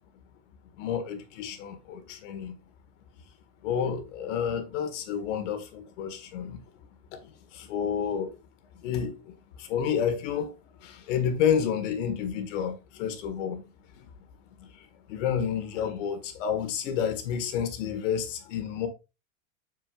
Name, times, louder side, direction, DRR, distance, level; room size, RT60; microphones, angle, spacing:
voice 1, 0.8-2.5 3.6-6.6 7.1-7.2 7.5-8.3 8.8-9.2 9.6-10.5 10.8-13.6 15.1-18.9, left 8 dB, 65° left, 1.7 m, -30 dB
6.8 x 6.1 x 2.4 m
supercardioid pair, 135°, 40 cm